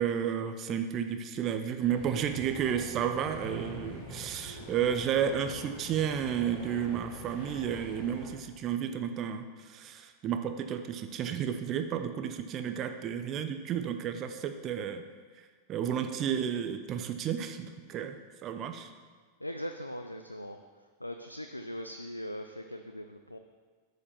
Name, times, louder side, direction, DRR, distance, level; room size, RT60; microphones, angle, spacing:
voice 1, 0.0-15.0 15.4-18.9, right 8 dB, 35° right, 7 dB, 0.6 m, -32 dB
sound 1, 1.9-8.3, equal, 35° left, 2.7 m, -44 dB
voice 2, 19.4-20.6 21.0-23.4, equal, 85° left, 6 dB, 0.4 m, -40 dB
8.3 x 5.0 x 6.9 m, 1.5 s
figure-of-eight pair, 90°, 0 cm